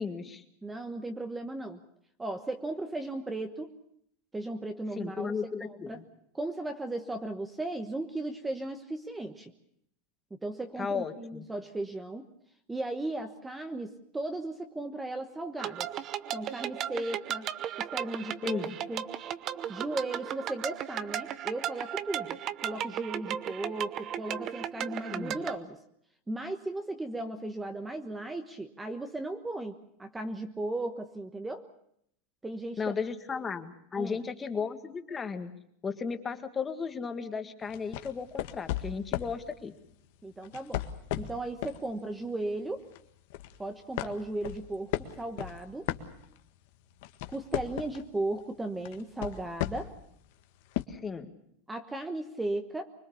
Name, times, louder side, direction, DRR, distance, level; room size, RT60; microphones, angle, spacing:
voice 1, 0.0-0.4 5.0-6.0 10.8-11.5 18.4-18.8 25.1-25.4 32.8-35.5 35.8-39.7 50.9-51.3, left 5 dB, 15° left, 7 dB, 1.8 m, -35 dB
voice 2, 0.6-1.8 2.2-3.7 4.3-5.3 5.6-6.0 6.3-9.5 10.3-12.2 12.7-15.9 16.3-17.5 17.8-19.0 19.7-25.8 26.3-31.7 32.4-32.8 34.0-34.2 40.2-40.8 41.2-42.8 43.6-45.9 47.3-49.9 51.7-52.9, right 2 dB, 10° right, 7 dB, 1.2 m, -36 dB
sound 1, 15.6-25.6, right 10 dB, 35° right, 0.9 m, -36 dB
sound 2, 37.7-39.4 40.4-41.8 42.3-42.5 42.9-43.6 44.0-46.6 46.9-48.1 48.9-50.0 50.7-50.8, left 14 dB, 65° left, 1.7 m, -35 dB
25.0 x 21.5 x 7.0 m, 0.72 s
supercardioid pair, 145°, 0 cm